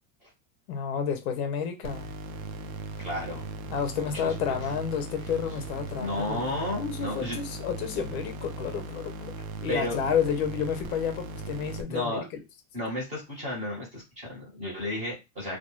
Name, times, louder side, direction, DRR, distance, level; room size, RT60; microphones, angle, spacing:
voice 1, 0.7-2.1 3.7-6.4 6.8-9.3 9.6-12.2, left 7 dB, 45° left, 0.6 m, -30 dB
sound 1, 1.8-11.8, right 3 dB, 60° right, 0.5 m, -38 dB
voice 2, 3.0-3.4 3.9-4.6 6.0-7.4 9.7-10.0 11.9-12.2 12.7-15.6, left 1 dB, 15° right, 1.0 m, -33 dB
2.2 x 2.2 x 3.0 m
supercardioid pair, 170°, 48 cm